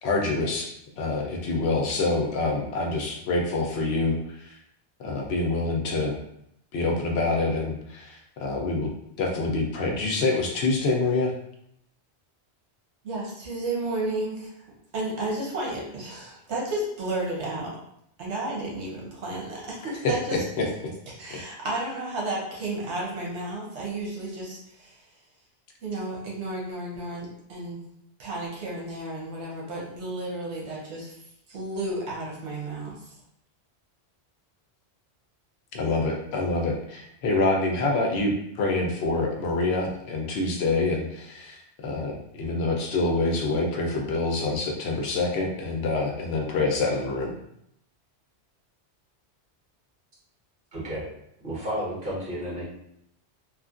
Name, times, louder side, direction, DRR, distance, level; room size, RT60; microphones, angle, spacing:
voice 1, 0.0-4.6 5.0-6.1 6.7-11.3 19.9-20.1 20.6-20.7 35.7-47.3, left 3 dB, 70° left, 1 dB, 0.8 m, -26 dB
voice 2, 13.0-14.5 14.9-17.7 18.2-20.4 21.2-24.9 25.8-27.8 28.2-31.1 31.5-32.9, right 2 dB, 80° right, -3 dB, 1.1 m, -32 dB
voice 3, 50.7-51.0 51.4-52.6, equal, 50° right, -6 dB, 1.2 m, -32 dB
3.1 x 2.4 x 2.4 m, 0.75 s
omnidirectional pair, 1.2 m